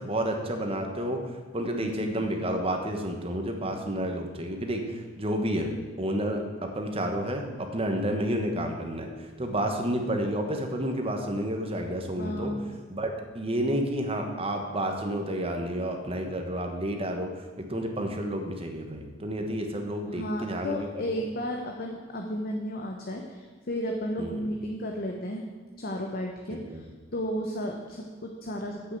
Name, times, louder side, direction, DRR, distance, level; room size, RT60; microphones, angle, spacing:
voice 1, 0.0-5.7 6.0-12.5 12.9-20.9 21.1-21.2 24.2-24.4 26.5-26.8, right 1 dB, 30° right, 4 dB, 1.2 m, -30 dB
voice 2, 1.8-2.2 12.2-12.7 20.1-25.5 25.8-26.9 27.1-29.0, equal, 50° left, 1 dB, 0.9 m, -33 dB
8.0 x 6.5 x 8.2 m, 1.4 s
head